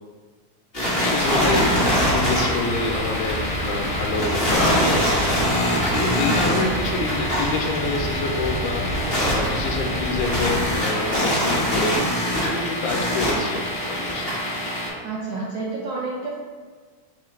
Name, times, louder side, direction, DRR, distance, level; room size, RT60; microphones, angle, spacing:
sound 1, 0.7-14.9, equal, 40° left, 0.8 m, -23 dB
voice 1, 1.0-5.4 5.6-14.3, left 3 dB, 90° left, 1 dB, 2.0 m, -28 dB
sound 2, 1.3-10.8, equal, 50° right, 1.3 m, -30 dB
voice 2, 6.3-6.6 15.0-16.3, right 3 dB, 75° right, -5 dB, 1.4 m, -29 dB
5.1 x 2.5 x 4.2 m, 1.5 s
omnidirectional pair, 3.3 m